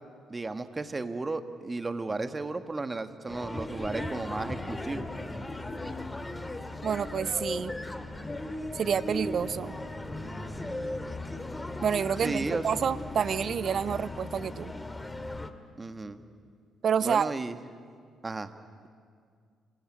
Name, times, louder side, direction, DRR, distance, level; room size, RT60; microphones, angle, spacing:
voice 1, 0.3-5.1 12.2-12.6 15.8-16.2 17.0-17.5 18.2-18.5, right 3 dB, 25° right, 9 dB, 1.7 m, -34 dB
sound 1, 3.3-15.5, left 1 dB, 15° left, 2.1 m, -37 dB
voice 2, 6.8-7.8 8.7-9.7 11.8-14.7 16.8-17.3, right 7 dB, 50° right, 18 dB, 0.6 m, -28 dB
27.0 x 21.0 x 9.8 m, 2.1 s
figure-of-eight pair, 45°, 0 cm